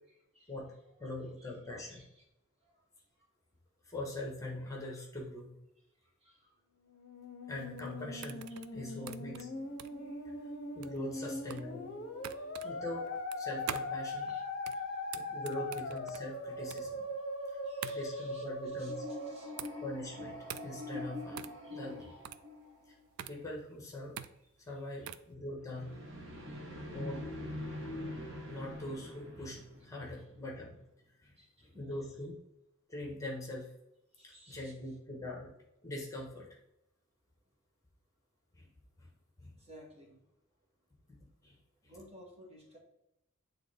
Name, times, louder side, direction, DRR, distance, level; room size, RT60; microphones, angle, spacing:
voice 1, 1.0-2.0 3.8-5.5 7.5-8.5 8.7-9.5 10.2-10.3 10.7-11.9 12.6-14.3 15.1-17.1 17.9-19.1 19.8-22.1 22.9-23.0 23.3-24.2 24.7-26.0 26.9-27.6 28.5-30.8 31.2-32.4 32.9-33.7 34.2-35.5 35.8-36.5 38.5-38.7 39.0-39.1 39.4-39.6 41.1-41.6 41.8-41.9, left 1 dB, 15° left, -1 dB, 1.4 m, -43 dB
voice 2, 1.8-2.2 2.6-2.7 6.2-6.5 8.9-9.0 10.0-10.2 11.1-11.3 12.2-12.8 14.2-14.4 17.6-18.4 18.8-19.5 21.6-22.1 24.7-25.1 26.5-26.6 31.4-31.5 34.2-34.7 39.6-40.2 41.8-42.8, equal, 30° right, -1 dB, 1.6 m, -58 dB
Musical instrument, 6.8-20.2, left 2 dB, 50° left, 0.9 m, -40 dB
sound 1, 7.6-25.3, right 9 dB, 80° right, 0.4 m, -47 dB
sound 2, 18.7-23.0 25.6-30.6, left 1 dB, 60° right, 1.4 m, -44 dB
8.3 x 3.9 x 3.5 m, 0.86 s
head